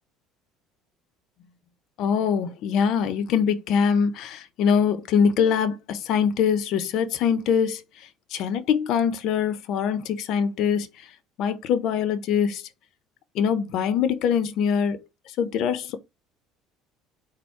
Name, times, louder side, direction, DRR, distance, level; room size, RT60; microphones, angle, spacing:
voice 1, 2.0-12.7 13.3-15.0 15.3-16.0, left 7 dB, 65° left, 0.7 m, -23 dB
4.4 x 2.2 x 4.4 m
supercardioid pair, 100°, 0 cm